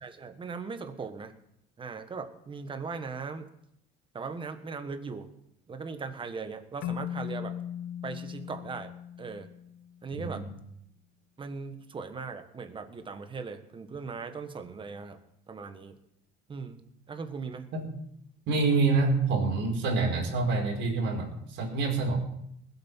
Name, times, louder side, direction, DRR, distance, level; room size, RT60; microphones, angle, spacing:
voice 1, 0.0-1.3 1.8-3.5 4.1-5.3 5.7-7.6 8.0-8.9 9.2-9.5 10.0-10.5 11.4-15.2 15.5-16.0 16.5-16.8 17.1-17.7, right 4 dB, 25° right, 7 dB, 1.5 m, -39 dB
Keyboard (musical), 6.8-10.1, left 10 dB, 60° left, 0.6 m, -38 dB
voice 2, 10.1-10.4 17.7-17.8 18.5-22.2, right 3 dB, 65° right, 0 dB, 4.9 m, -27 dB
20.0 x 8.2 x 5.7 m, 0.75 s
cardioid pair, 135°, 20 cm